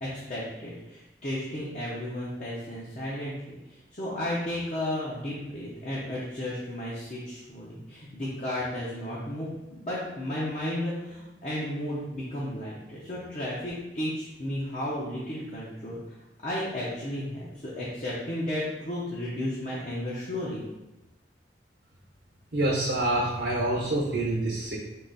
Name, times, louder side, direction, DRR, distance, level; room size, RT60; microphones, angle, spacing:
voice 1, 0.0-16.0 16.4-20.6, left 1 dB, 40° left, -6 dB, 0.8 m, -33 dB
voice 2, 22.5-24.8, right 1 dB, 65° right, -3 dB, 0.9 m, -26 dB
3.9 x 2.9 x 4.0 m, 1.0 s
head